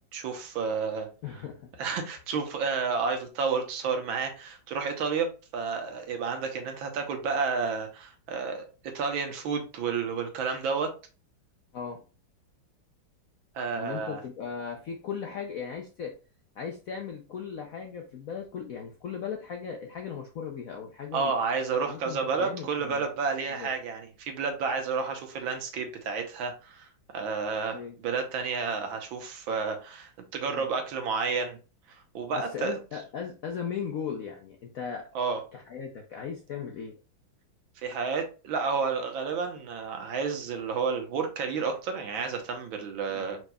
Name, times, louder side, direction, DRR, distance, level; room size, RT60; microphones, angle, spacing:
voice 1, 0.1-1.1 1.8-10.9 13.5-14.2 21.1-26.9 27.1-31.6 31.9-32.8 35.1-35.4 37.8-43.4, right 5 dB, 80° right, 4 dB, 1.7 m, -31 dB
voice 2, 1.2-1.7 11.7-12.0 13.7-16.1 16.6-21.3 21.9-23.1 23.5-23.7 27.7-27.9 30.5-30.7 32.3-35.1 35.5-37.0 43.1-43.3, left 7 dB, 70° left, 2 dB, 0.8 m, -37 dB
5.1 x 4.5 x 2.3 m, 0.34 s
omnidirectional pair, 2.2 m